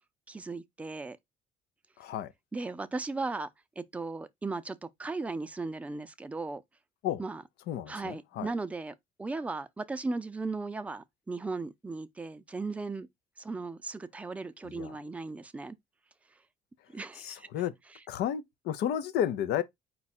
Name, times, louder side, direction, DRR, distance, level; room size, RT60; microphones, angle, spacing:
voice 1, 0.3-1.2 2.5-3.5 3.8-6.6 7.2-7.4 7.9-13.1 13.4-15.8 16.9-17.5, right 3 dB, 10° right, 0.4 m, -37 dB
voice 2, 2.0-2.3 7.0-7.2 7.7-8.5 14.6-15.0 17.1-17.7 18.1-19.6, left 10 dB, 75° left, 0.6 m, -32 dB
4.5 x 2.3 x 4.1 m
cardioid pair, 110°, 17 cm